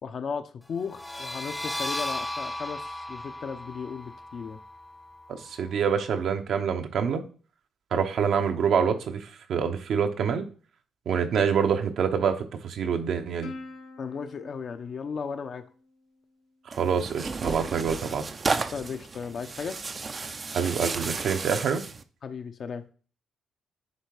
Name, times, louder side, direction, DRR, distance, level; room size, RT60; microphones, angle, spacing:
voice 1, 0.0-4.6 14.0-15.6 18.7-19.8 22.2-22.8, left 6 dB, 50° left, 8 dB, 0.8 m, -35 dB
sound 1, 0.8-6.3, left 1 dB, 10° left, 0.6 m, -36 dB
voice 2, 5.3-7.2 7.9-10.5 11.1-13.5 16.8-18.2 20.5-21.8, right 7 dB, 70° right, 6 dB, 1.0 m, -26 dB
Plucked string instrument, 13.4-16.2, left 3 dB, 75° left, 1.8 m, -45 dB
Tearing, 16.7-22.0, right 4 dB, 35° right, 0.6 m, -33 dB
9.7 x 3.4 x 4.9 m, 0.39 s
cardioid pair, 90°, 0 cm